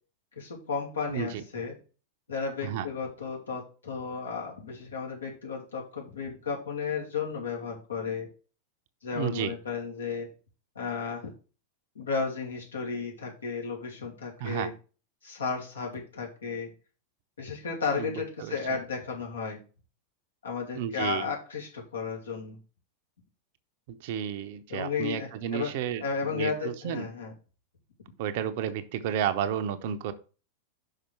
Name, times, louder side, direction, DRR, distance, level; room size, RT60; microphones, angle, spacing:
voice 1, 0.4-1.8 2.3-8.3 9.0-10.3 10.7-11.3 11.9-14.7 15.2-16.7 17.4-19.6 20.4-22.6 24.7-25.7 26.0-27.3, left 5 dB, 70° left, -1 dB, 2.7 m, -33 dB
voice 2, 1.1-1.4 2.6-2.9 9.1-9.6 14.4-14.7 17.9-18.8 20.7-21.3 23.9-27.1 28.2-30.1, right 9 dB, 50° right, 10 dB, 0.8 m, -32 dB
5.8 x 5.1 x 6.1 m, 0.35 s
figure-of-eight pair, 90°, 0 cm